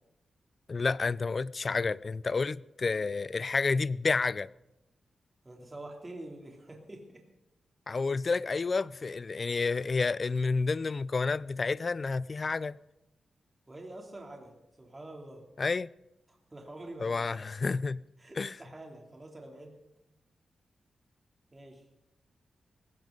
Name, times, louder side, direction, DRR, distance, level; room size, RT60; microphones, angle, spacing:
voice 1, 0.7-4.5 7.9-12.8 15.6-15.9 17.0-18.0 18.4-18.6, left 4 dB, 40° left, 0.5 m, -30 dB
voice 2, 5.4-7.3 7.9-8.0 13.7-15.5 16.3-17.2 18.2-19.8 21.5-21.8, right 1 dB, 25° right, 3.0 m, -46 dB
18.5 x 16.5 x 3.9 m
cardioid pair, 90°, 0 cm